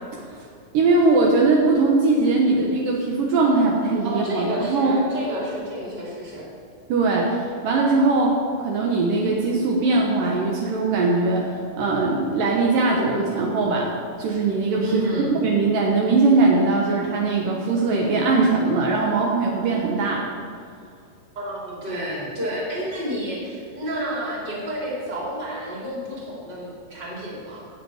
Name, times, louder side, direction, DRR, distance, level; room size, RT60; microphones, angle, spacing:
voice 1, 0.7-5.0 6.9-13.9 14.2-15.1 15.3-20.2, right 3 dB, 70° right, -2 dB, 2.7 m, -20 dB
voice 2, 4.0-6.5 14.9-15.4 21.3-27.7, right 1 dB, 30° right, -5 dB, 3.4 m, -30 dB
16.5 x 8.4 x 4.9 m, 2.3 s
omnidirectional pair, 4.1 m